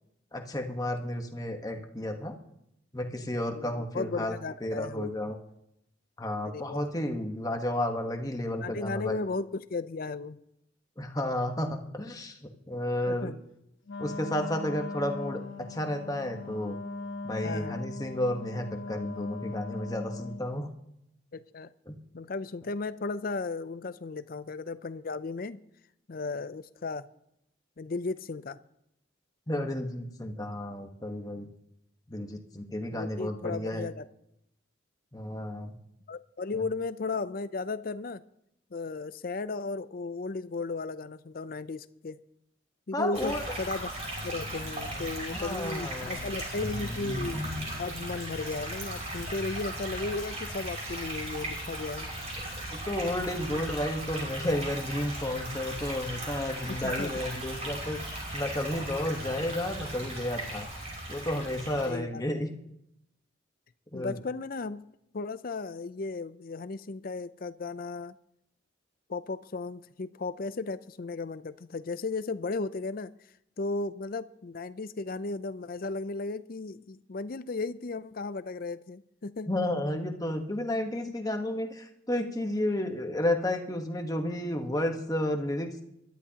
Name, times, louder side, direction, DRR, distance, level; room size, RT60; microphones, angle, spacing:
voice 1, 0.3-2.3 2.9-4.3 4.6-5.4 6.2-9.2 11.0-12.4 12.7-13.3 14.0-15.4 15.7-16.8 17.2-20.7 21.9-22.0 29.5-31.5 32.1-33.9 35.1-35.7 36.5-36.6 42.9-43.4 45.0-46.4 52.7-58.0 58.3-60.7 61.1-62.5 63.9-64.2 79.5-85.8, left 1 dB, 20° left, 4 dB, 1.2 m, -32 dB
voice 2, 3.5-5.4 6.4-6.9 8.6-10.4 13.1-13.3 17.4-17.8 21.3-21.7 22.1-25.6 26.1-27.0 27.8-28.6 32.9-34.1 36.1-38.2 38.7-42.2 42.9-43.9 44.2-47.5 47.8-52.1 56.7-57.2 61.8-62.2 63.9-64.8 65.1-68.1 69.1-73.1 73.6-79.5, left 3 dB, 45° left, 14 dB, 0.5 m, -35 dB
Wind instrument woodwind instrument, 13.9-20.5, left 3 dB, 80° left, 1.1 m, -39 dB
sound 1, 43.1-61.9, right 1 dB, 35° right, 5.6 m, -37 dB
22.0 x 12.5 x 2.9 m, 0.78 s
head